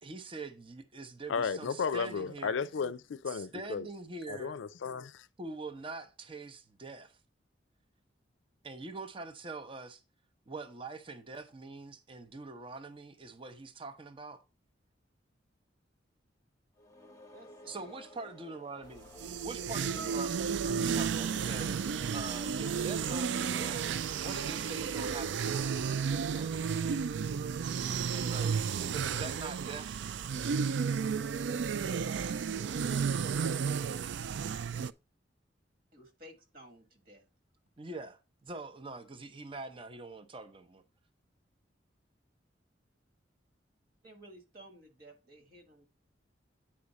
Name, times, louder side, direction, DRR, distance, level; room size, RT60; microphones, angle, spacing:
voice 1, 0.0-2.6 3.3-4.6 5.4-7.2 8.6-10.0 10.5-14.4 17.7-21.7 22.1-23.8 24.2-26.7 28.1-30.0 37.8-40.8, right 3 dB, 30° right, 0.7 m, -44 dB
voice 2, 1.3-3.9 4.3-5.3, left 5 dB, 85° left, 0.4 m, -34 dB
sound 1, 16.7-25.6, left 2 dB, 15° left, 0.8 m, -54 dB
voice 3, 17.3-18.0 35.9-37.2 44.0-45.9, right 1 dB, 50° right, 1.5 m, -55 dB
sound 2, 19.0-34.9, right 6 dB, 70° right, 0.4 m, -33 dB
8.7 x 4.9 x 4.1 m
head